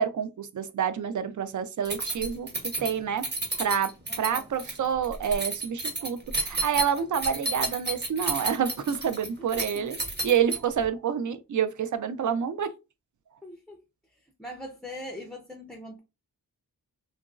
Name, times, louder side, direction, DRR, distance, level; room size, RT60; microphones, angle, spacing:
voice 1, 0.0-3.3 3.6-10.0 10.2-12.7, right 8 dB, 60° right, 0.4 m, -28 dB
Keys jangling, 1.8-10.9, right 2 dB, 30° right, 0.9 m, -32 dB
voice 2, 4.1-4.5 9.5-9.9 13.4-13.8 14.1-16.0, left 1 dB, ahead, 0.4 m, -42 dB
2.9 x 2.5 x 2.3 m
wide cardioid pair, 120°, 35 cm